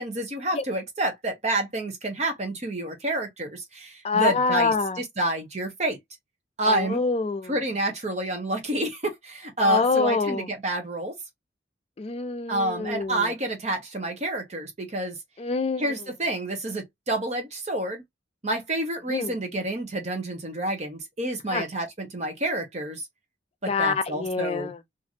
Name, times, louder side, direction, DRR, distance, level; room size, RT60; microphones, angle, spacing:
voice 1, 0.0-6.0 6.6-7.0 7.5-11.2 12.5-15.2 15.8-18.0 18.4-23.1 23.8-24.7, right 1 dB, 35° right, 0.8 m, -28 dB
voice 2, 4.0-5.0 6.7-7.6 9.6-10.5 12.0-13.3 15.4-16.0 19.1-19.3 21.5-21.7 23.7-24.8, left 4 dB, 30° left, 0.4 m, -26 dB
3.0 x 2.5 x 2.4 m
head